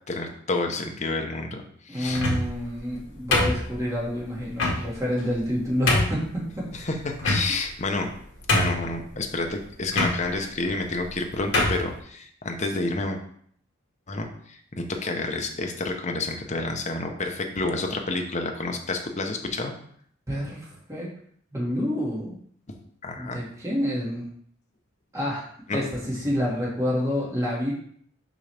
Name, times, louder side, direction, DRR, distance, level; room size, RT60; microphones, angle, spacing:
voice 1, 0.1-2.3 6.8-8.1 8.5-13.2 14.1-19.7 23.0-23.4 25.7-25.8, left 2 dB, 35° left, 3 dB, 0.9 m, -29 dB
voice 2, 1.9-6.7 20.3-21.1 21.5-22.4 23.2-24.3 25.1-27.7, equal, 15° right, -6 dB, 2.0 m, -28 dB
sound 1, 2.1-2.6 3.3-4.0 4.6-4.8 5.4-5.5 5.9-6.2 7.2-7.7 8.1-8.2 8.5-9.0 9.9-10.1 11.0-11.1 11.5-11.8, left 2 dB, 65° left, 1.9 m, -23 dB
6.3 x 5.3 x 3.4 m, 0.62 s
head